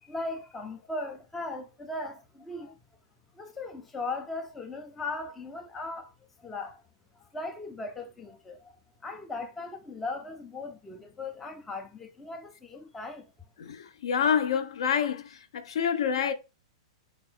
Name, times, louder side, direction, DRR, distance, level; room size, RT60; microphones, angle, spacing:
voice 1, 0.0-2.8 3.4-6.1 6.4-6.8 7.3-8.7 9.0-13.3, left 2 dB, 5° left, 0.3 m, -38 dB
voice 2, 13.6-16.3, left 7 dB, 70° left, 0.5 m, -27 dB
3.5 x 2.3 x 3.7 m
supercardioid pair, 170°, 3 cm